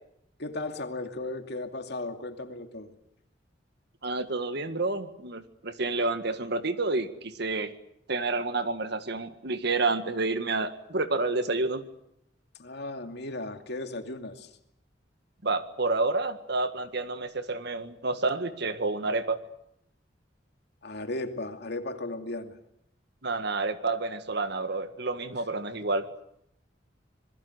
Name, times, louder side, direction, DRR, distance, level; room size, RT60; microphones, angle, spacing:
voice 1, 0.4-2.9 12.6-14.5 20.8-22.6, left 2 dB, 65° left, 6 dB, 2.6 m, -36 dB
voice 2, 4.0-7.7 8.1-11.8 15.4-19.4 23.2-26.1, right 3 dB, 65° right, 10 dB, 1.8 m, -29 dB
26.5 x 21.0 x 8.1 m, 0.77 s
head